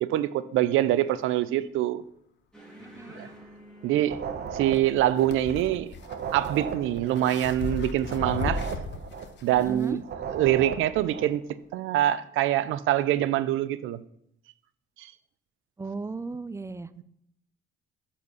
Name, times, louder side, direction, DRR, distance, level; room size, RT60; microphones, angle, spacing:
voice 1, 0.0-2.0 3.2-3.3 3.8-4.2 4.5-5.9 6.3-8.6 9.4-10.0 10.3-11.4 11.7-14.0 15.0-15.1 17.0-17.1, right 13 dB, 90° right, 0.6 m, -25 dB
sound 1, 2.5-7.5, equal, 5° left, 3.3 m, -52 dB
voice 2, 2.8-3.3 9.6-10.0 15.8-16.9, right 3 dB, 15° right, 0.5 m, -36 dB
sound 2, 4.0-5.7 6.0-9.7 10.0-11.4, right 6 dB, 55° right, 1.0 m, -36 dB
sound 3, 4.7-9.9, left 4 dB, 65° left, 1.0 m, -36 dB
8.5 x 4.3 x 6.9 m
cardioid pair, 90°, 20 cm